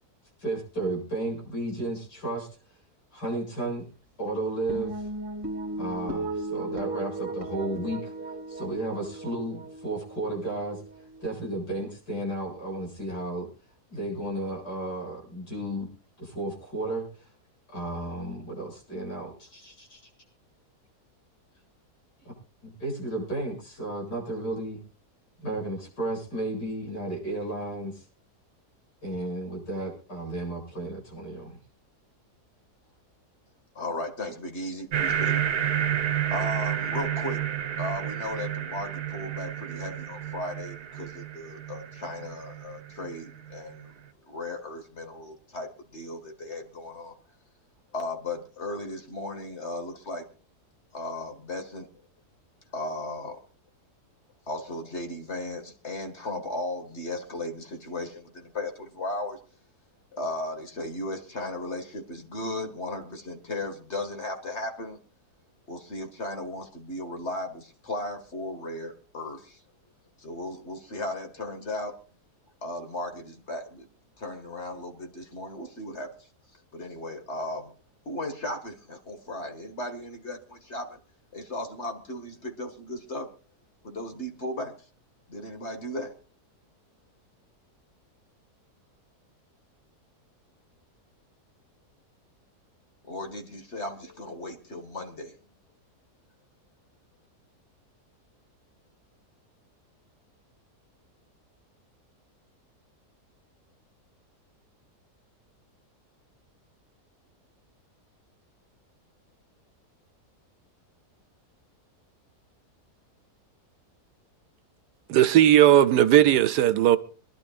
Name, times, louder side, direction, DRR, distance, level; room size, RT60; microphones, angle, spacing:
voice 1, 0.4-2.5 3.1-3.8 4.2-4.9 5.8-8.1 8.5-10.8 11.2-13.5 13.9-15.9 16.2-17.3 17.7-20.0 22.6-24.8 25.4-28.0 29.0-31.6, right 2 dB, 90° left, 8.8 m, -33 dB
sound 1, 4.7-11.3, right 2 dB, 30° right, 2.2 m, -36 dB
voice 2, 33.8-35.7 36.3-37.5 37.8-43.9 44.3-47.1 47.9-50.3 50.9-51.9 52.7-53.4 54.5-59.4 60.1-65.0 65.7-69.6 70.2-72.0 72.6-73.9 74.2-76.3 76.7-77.7 78.1-81.0 81.3-83.3 83.8-84.7 85.3-86.2 93.1-95.4, left 1 dB, 45° left, 2.2 m, -36 dB
sound 2, 34.9-43.9, right 9 dB, 70° right, 1.5 m, -31 dB
voice 3, 115.1-117.0, right 12 dB, 90° right, 1.4 m, -17 dB
26.0 x 11.5 x 2.5 m
omnidirectional pair, 1.7 m